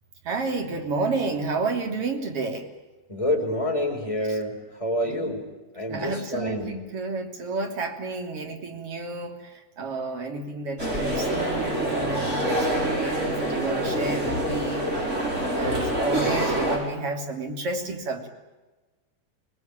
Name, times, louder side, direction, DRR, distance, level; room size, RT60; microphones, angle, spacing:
voice 1, 0.2-2.7 4.3-4.4 5.0-5.4 5.9-18.3, right 3 dB, 40° right, 4 dB, 3.7 m, -31 dB
voice 2, 3.1-5.4 5.7-6.7, left 1 dB, 10° left, 0 dB, 5.4 m, -27 dB
sound 1, 10.8-16.8, right 1 dB, 20° right, 7.0 m, -26 dB
27.0 x 20.5 x 8.9 m, 1.2 s
omnidirectional pair, 4.1 m